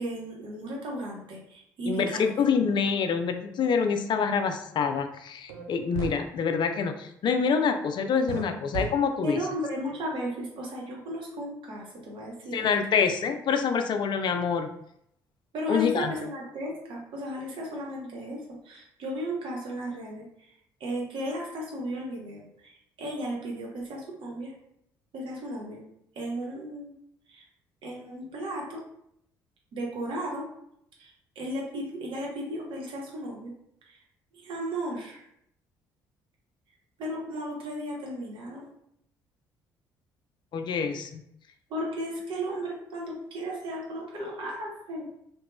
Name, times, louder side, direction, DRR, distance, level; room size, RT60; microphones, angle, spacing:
voice 1, 0.0-2.5 9.2-12.7 15.5-20.5 20.8-24.5 25.1-25.8 26.1-26.9 27.3-27.4 27.8-28.8 29.7-30.5 31.0-33.5 33.9-34.0 34.3-35.2 37.0-38.7 41.7-45.1, equal, 55° right, -2 dB, 1.0 m, -35 dB
voice 2, 1.8-9.4 12.5-14.7 15.7-16.1 40.5-41.2, left 6 dB, 50° left, 6 dB, 0.4 m, -26 dB
sound 1, 5.5-5.6 5.9-6.2 8.3-8.4 8.7-8.9, right 6 dB, 75° right, 0.4 m, -32 dB
2.9 x 2.9 x 2.2 m, 0.74 s
hypercardioid pair, 55°, 10 cm